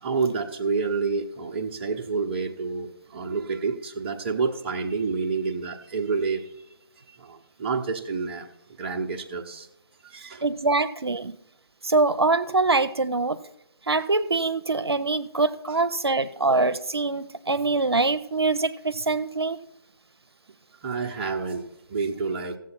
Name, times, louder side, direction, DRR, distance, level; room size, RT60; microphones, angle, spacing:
voice 1, 0.0-6.5 7.2-8.5 8.8-9.7 10.0-10.4 16.0-16.1 20.8-22.6, right 4 dB, 25° right, 2 dB, 0.8 m, -29 dB
voice 2, 10.4-11.3 11.8-13.4 13.9-19.6, right 3 dB, 90° right, 11 dB, 0.5 m, -24 dB
15.5 x 7.5 x 4.3 m, 0.85 s
figure-of-eight pair, 150°, 13 cm